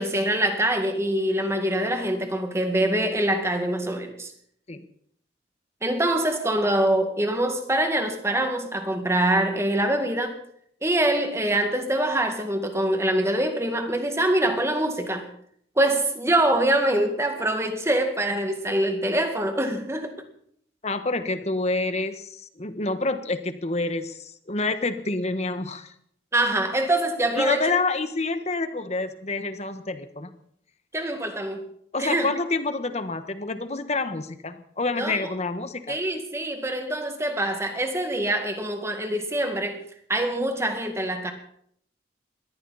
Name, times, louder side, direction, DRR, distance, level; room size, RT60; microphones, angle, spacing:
voice 1, 0.0-4.3 5.8-10.4 10.8-15.3 15.8-20.1 26.3-27.6 30.9-31.6 32.0-32.3 34.9-35.3 35.9-39.8 40.1-41.3, right 1 dB, 15° right, 2.0 m, -24 dB
voice 2, 20.8-25.9 27.3-30.3 31.9-36.0, left 3 dB, 35° left, 1.4 m, -28 dB
21.0 x 14.5 x 4.2 m
head